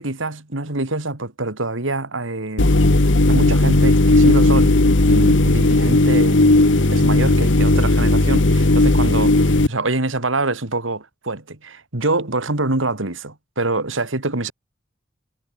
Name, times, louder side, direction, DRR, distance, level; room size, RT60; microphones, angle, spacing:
voice 1, 0.0-2.7 3.3-6.4 6.9-14.5, right 2 dB, 90° right, 2.7 m, -25 dB
sound 1, 2.6-9.7, left 2 dB, 70° left, 1.4 m, -15 dB
head